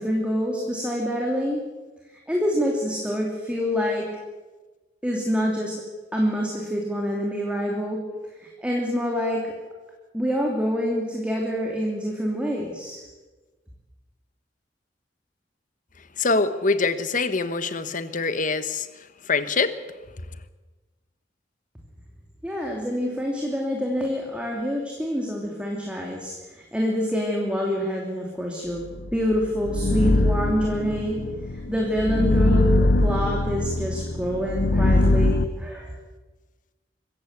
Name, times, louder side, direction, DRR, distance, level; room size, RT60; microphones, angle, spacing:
voice 1, 0.0-1.6 2.3-4.1 5.0-5.7 6.1-8.0 8.4-9.5 10.1-13.0 22.4-28.8 29.1-31.2 31.7-35.9, equal, 5° right, 2.9 m, -26 dB
voice 2, 16.2-18.9 19.2-19.8, left 4 dB, 50° left, 1.3 m, -24 dB
sound 1, 29.0-35.4, left 2 dB, 70° left, 0.9 m, -22 dB
24.5 x 15.0 x 8.3 m
head